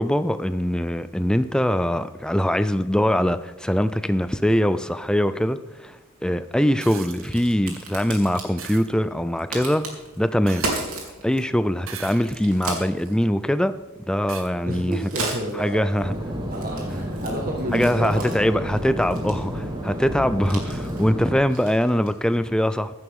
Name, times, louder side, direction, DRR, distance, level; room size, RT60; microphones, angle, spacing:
voice 1, 0.0-9.9 10.2-10.7 11.2-13.8 14.1-15.1 15.6-16.1 17.7-22.9, equal, 5° left, 12 dB, 0.4 m, -22 dB
sound 1, 6.8-7.3 8.6-8.9 10.5-11.1 11.8-12.6 13.2-13.3 14.3-14.5 16.0-16.1, right 7 dB, 65° right, 1.2 m, -39 dB
Crack, 6.8-22.3, right 2 dB, 90° right, 3.1 m, -37 dB
voice 2, 14.6-15.8 16.5-18.3 18.5-18.6 19.8-20.0, right 1 dB, 40° right, 0 dB, 1.6 m, -30 dB
sound 2, 16.0-21.4, equal, 20° right, 1.3 m, -30 dB
15.5 x 12.5 x 3.7 m, 1.1 s
head